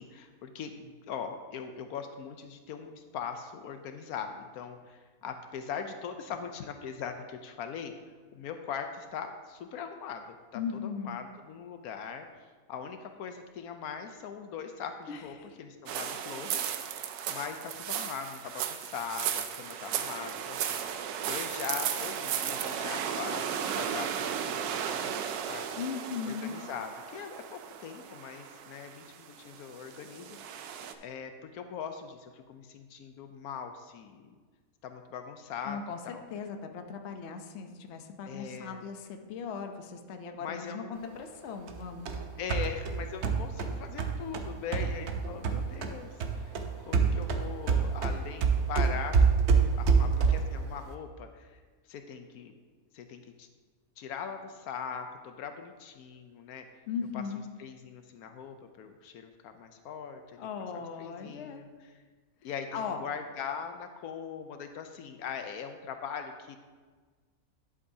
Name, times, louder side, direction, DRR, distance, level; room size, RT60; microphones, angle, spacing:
voice 1, 0.0-7.9 8.3-12.3 12.7-25.7 26.2-34.4 34.8-35.8 36.0-36.2 38.2-38.8 40.4-40.9 42.4-49.3 49.7-51.6 51.9-52.5 52.9-53.5 54.0-56.7 57.1-57.2 57.6-60.4 60.7-61.9 62.4-62.7 63.0-66.6, left 7 dB, 80° left, 7 dB, 1.1 m, -41 dB
voice 2, 10.5-11.2 15.1-15.6 25.8-26.6 35.6-42.1 56.9-57.4 60.3-61.7 62.4-63.0, left 6 dB, 55° left, 5 dB, 0.9 m, -38 dB
sound 1, 15.9-30.9, right 8 dB, 85° right, 1.1 m, -35 dB
sound 2, 41.7-45.9 46.2-50.6, right 5 dB, 55° right, 0.9 m, -26 dB
11.0 x 7.7 x 2.7 m, 1.4 s
omnidirectional pair, 1.6 m